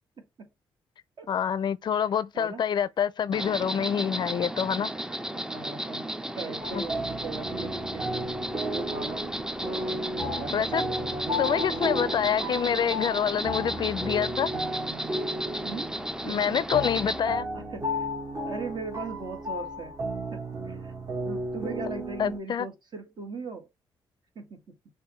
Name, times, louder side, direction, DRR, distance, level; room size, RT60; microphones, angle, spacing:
voice 1, 0.2-0.5 1.2-1.3 2.3-2.6 5.3-8.3 8.7-12.4 15.6-16.0 16.2-16.6 17.2-18.1 18.4-19.9 20.3-23.7 24.3-24.6, right 3 dB, 55° right, 1.7 m, -39 dB
voice 2, 1.3-4.9 6.7-6.8 10.5-10.9 11.4-14.5 16.2-17.5 22.2-22.7, left 8 dB, 55° left, 0.4 m, -27 dB
Insect, 3.3-17.2, right 1 dB, 5° right, 0.5 m, -34 dB
sound 1, 6.6-22.4, equal, 35° right, 1.3 m, -34 dB
6.0 x 2.6 x 3.1 m
cardioid pair, 70°, 9 cm